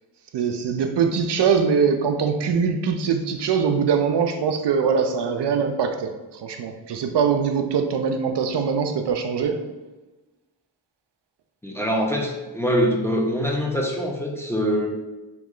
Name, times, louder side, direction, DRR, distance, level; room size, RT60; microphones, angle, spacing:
voice 1, 0.3-9.6, right 6 dB, 70° right, 5 dB, 0.5 m, -22 dB
voice 2, 11.6-14.9, equal, 5° left, -1 dB, 0.7 m, -24 dB
3.0 x 3.0 x 3.7 m, 1.1 s
cardioid pair, 50°, 44 cm